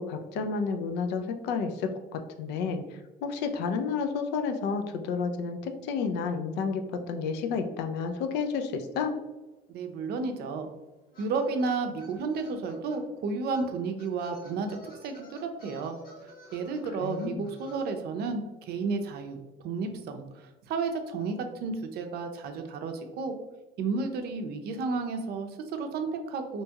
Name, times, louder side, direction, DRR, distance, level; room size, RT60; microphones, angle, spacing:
voice 1, 0.0-9.1 17.0-17.5, left 5 dB, 85° left, 6 dB, 0.4 m, -31 dB
sound 1, 9.4-9.5 9.7-13.0 13.5-13.7 14.0-17.9, equal, 60° left, 0.9 m, -52 dB
voice 2, 9.7-10.7 11.2-16.0 16.5-23.3 23.8-26.6, right 4 dB, 70° right, 6 dB, 0.5 m, -32 dB
2.9 x 2.3 x 2.7 m, 1.1 s
cardioid pair, 110°, 17 cm